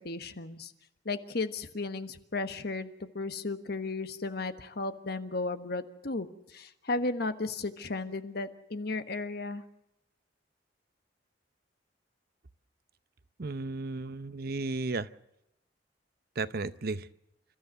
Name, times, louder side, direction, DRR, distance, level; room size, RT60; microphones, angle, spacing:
voice 1, 0.0-0.7 1.0-6.3 6.5-9.6, left 3 dB, 60° left, 10 dB, 1.3 m, -34 dB
voice 2, 13.4-15.1 16.4-17.1, right 3 dB, 55° right, 14 dB, 0.7 m, -34 dB
28.5 x 13.5 x 8.0 m, 0.85 s
head